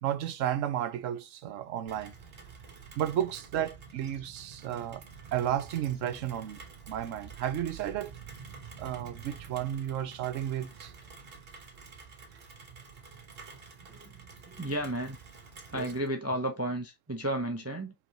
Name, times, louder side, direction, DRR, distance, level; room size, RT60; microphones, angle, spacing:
voice 1, 0.0-2.1 3.0-5.0 5.3-6.6 6.9-8.1 8.8-10.9 15.7-15.9, right 11 dB, 75° right, 1.0 m, -32 dB
Rain, 1.9-16.1, right 5 dB, 50° right, 1.3 m, -49 dB
voice 2, 13.8-15.2 15.7-17.9, right 1 dB, 15° right, 0.5 m, -33 dB
5.0 x 3.7 x 2.9 m
omnidirectional pair, 1.4 m